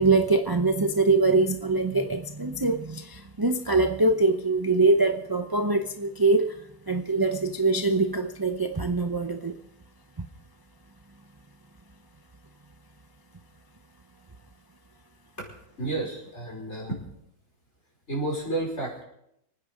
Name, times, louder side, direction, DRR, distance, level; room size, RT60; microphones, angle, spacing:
voice 1, 0.0-6.6 6.9-9.6, right 3 dB, 25° right, 0.5 m, -23 dB
voice 2, 15.8-17.0 18.1-19.0, right 2 dB, 45° left, 5.4 m, -31 dB
25.0 x 9.6 x 5.2 m
omnidirectional pair, 1.6 m